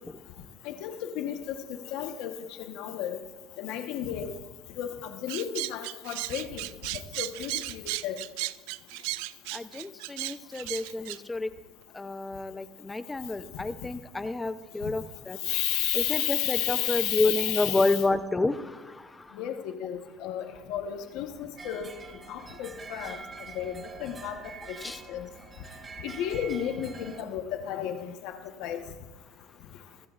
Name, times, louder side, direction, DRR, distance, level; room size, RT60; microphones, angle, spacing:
voice 1, 0.6-1.5 1.9-2.3 2.6-3.2 3.6-4.3 4.8-6.6 7.2-8.2 15.4-18.0 19.4-21.9 22.3-23.2 23.5-24.4 24.7-24.8 25.1-25.3 26.0-28.3 28.6-28.8, left 11 dB, 70° left, 5 dB, 1.1 m, -32 dB
sound 1, 5.3-11.2, right 20 dB, 80° right, 0.4 m, -35 dB
voice 2, 9.5-11.5 11.9-15.4 15.9-19.2 24.8-25.0, left 2 dB, 10° left, 11 dB, 0.7 m, -29 dB
sound 2, 21.6-27.2, right 5 dB, 20° right, 1.3 m, -45 dB
26.5 x 15.5 x 2.5 m, 1.1 s
cardioid pair, 135°, 0 cm